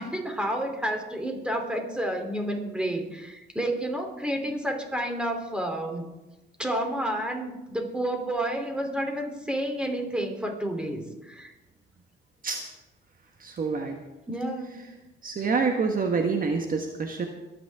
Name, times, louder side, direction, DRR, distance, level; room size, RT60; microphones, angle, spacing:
voice 1, 0.0-6.0 6.6-11.5 14.3-14.8, right 1 dB, 5° right, 2 dB, 3.2 m, -30 dB
voice 2, 13.4-14.0 15.2-17.3, right 4 dB, 45° right, 4 dB, 1.4 m, -27 dB
24.0 x 9.5 x 3.6 m, 1.0 s
cardioid pair, 90°, 20 cm